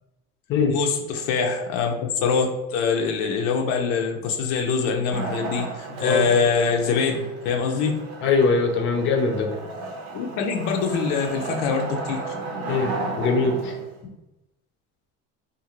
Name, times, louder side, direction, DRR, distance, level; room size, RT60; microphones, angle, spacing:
voice 1, 0.7-7.9 10.1-12.2, left 5 dB, 90° left, 2 dB, 0.6 m, -24 dB
Wood, 5.1-14.0, right 3 dB, 85° right, 0.8 m, -34 dB
voice 2, 8.2-9.5 12.7-12.9 13.2-13.7, left 4 dB, 40° left, 3 dB, 0.5 m, -21 dB
2.5 x 2.5 x 2.9 m, 0.98 s
cardioid pair, 125°, 30 cm